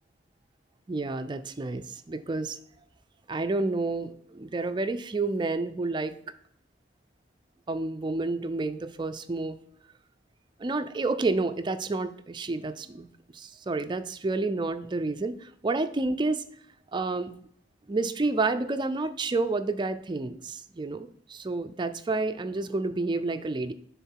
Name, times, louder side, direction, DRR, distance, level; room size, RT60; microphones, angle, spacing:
voice 1, 0.9-2.6 3.3-6.2 7.7-9.6 10.6-13.1 13.3-16.4 16.9-17.3 17.9-23.7, right 3 dB, 25° right, 10 dB, 0.4 m, -29 dB
6.9 x 3.6 x 4.6 m, 0.68 s
head